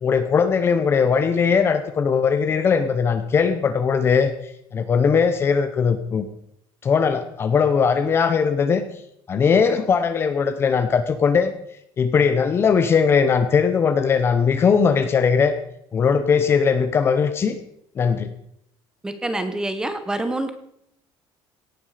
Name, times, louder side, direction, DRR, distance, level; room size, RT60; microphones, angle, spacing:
voice 1, 0.0-4.3 4.7-6.3 6.8-8.8 9.3-11.5 12.0-15.5 15.9-17.6 18.0-18.3, left 6 dB, 25° left, 10 dB, 0.8 m, -19 dB
voice 2, 19.0-20.6, right 2 dB, 5° right, 9 dB, 1.1 m, -26 dB
17.0 x 9.8 x 5.0 m, 0.75 s
cardioid pair, 180°, 9 cm